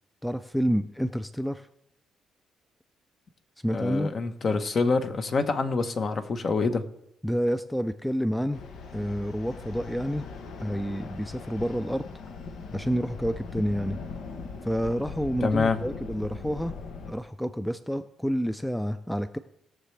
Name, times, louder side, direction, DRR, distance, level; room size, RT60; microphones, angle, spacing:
voice 1, 0.2-1.7 3.6-4.1 7.2-8.6 8.9-10.3 10.6-12.1 12.7-14.0 14.6-16.7 17.1-19.4, equal, 5° left, 11 dB, 0.4 m, -29 dB
voice 2, 3.7-6.8 15.4-15.8, left 4 dB, 45° left, 8 dB, 1.1 m, -26 dB
sound 1, 8.5-17.1, left 4 dB, 75° left, 1.0 m, -40 dB
19.5 x 6.8 x 3.3 m, 0.79 s
cardioid pair, 90°, 0 cm